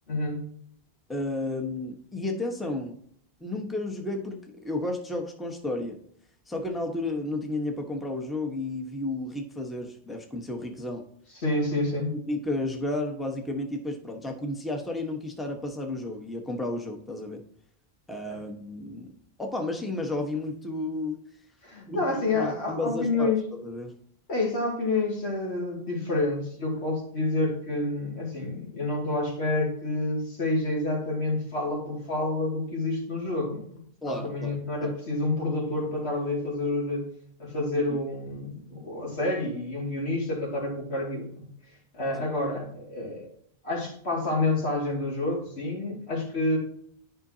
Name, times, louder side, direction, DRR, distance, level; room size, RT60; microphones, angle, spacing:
voice 1, 0.1-0.4 11.4-12.1 18.3-18.4 21.6-23.4 24.3-37.1 37.4-41.5 41.9-43.3 43.6-46.6, left 2 dB, 85° left, -2 dB, 2.7 m, -28 dB
voice 2, 1.1-3.0 3.4-6.0 6.5-11.0 12.3-17.4 18.1-19.1 19.4-21.2 21.9-22.0 22.3-23.3 23.6-23.9 34.0-34.9, left 2 dB, ahead, 2 dB, 1.1 m, -32 dB
10.5 x 5.6 x 2.8 m, 0.63 s
omnidirectional pair, 1.1 m